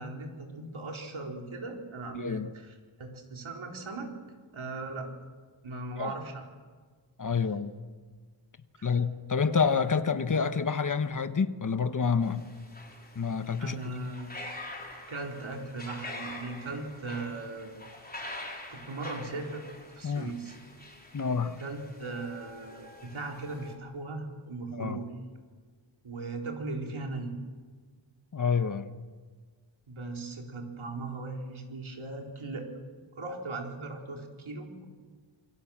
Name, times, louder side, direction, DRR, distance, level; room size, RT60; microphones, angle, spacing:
voice 1, 0.0-4.1 4.5-5.1 5.6-6.4 8.8-9.0 13.6-14.3 15.1-17.7 18.7-19.6 20.0-20.6 21.6-25.1 26.0-27.4 29.9-32.7 33.2-34.9, right 3 dB, 70° right, 4.5 m, -38 dB
voice 2, 2.1-2.5 5.9-6.1 7.2-7.8 8.8-12.5 13.1-13.8 20.0-20.3 21.1-21.6 24.7-25.0 28.3-28.9, left 5 dB, 40° left, 1.3 m, -28 dB
sound 1, 12.2-23.7, left 2 dB, 20° left, 4.0 m, -45 dB
27.5 x 24.0 x 7.4 m
wide cardioid pair, 165°, 50 cm